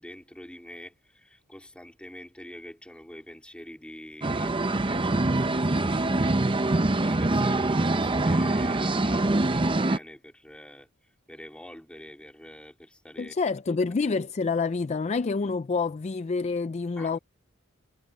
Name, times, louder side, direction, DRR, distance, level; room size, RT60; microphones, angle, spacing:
voice 1, 0.0-10.9 11.3-13.3 13.7-13.8 17.0-17.2, left 1 dB, 5° left, 3.4 m, -46 dB
sound 1, 4.2-10.0, right 2 dB, 25° right, 0.7 m, -24 dB
voice 2, 13.2-17.2, left 4 dB, 35° left, 0.4 m, -27 dB
head